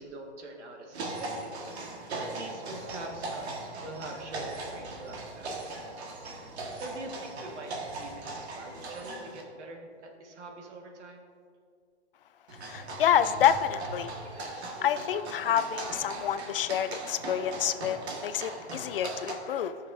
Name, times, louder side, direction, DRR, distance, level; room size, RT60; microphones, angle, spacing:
voice 1, 0.0-1.6 2.2-5.5 6.7-7.7 8.0-11.2, right 1 dB, 90° right, 1 dB, 1.7 m, -44 dB
sound 1, 0.9-9.4 12.5-19.4, right 2 dB, 70° right, 1.6 m, -39 dB
voice 2, 12.6-19.8, left 9 dB, 55° left, 12 dB, 0.5 m, -28 dB
14.5 x 6.6 x 2.6 m, 2.2 s
hypercardioid pair, 170°, 34 cm